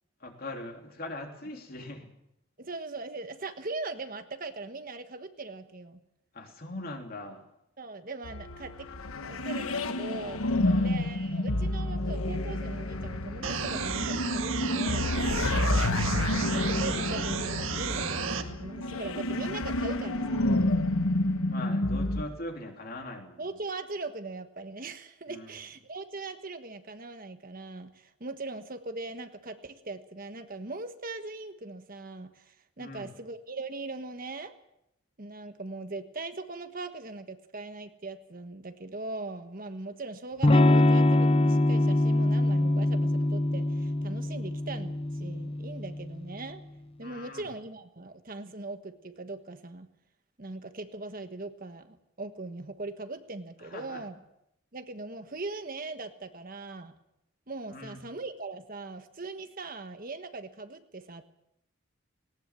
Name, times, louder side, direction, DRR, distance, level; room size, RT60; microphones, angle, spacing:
voice 1, 0.2-2.1 6.3-7.4 10.6-11.0 15.3-15.8 21.5-23.5 25.3-25.5 32.8-33.1 47.0-47.5 53.7-54.0 57.7-58.0, left 2 dB, 45° left, 3 dB, 3.2 m, -41 dB
voice 2, 2.6-6.0 7.8-8.9 9.2-15.1 16.3-20.5 23.4-34.5 35.2-46.6 47.0-49.9 50.4-54.2 54.7-56.9 57.5-61.2, right 3 dB, 40° right, 8 dB, 1.3 m, -40 dB
sound 1, 8.2-22.2, left 1 dB, 85° left, 1.4 m, -29 dB
sound 2, 13.4-18.4, right 5 dB, 70° right, 1.7 m, -33 dB
Electric guitar / Strum, 40.4-46.1, left 1 dB, 25° left, 0.7 m, -24 dB
19.0 x 18.5 x 7.5 m, 0.80 s
head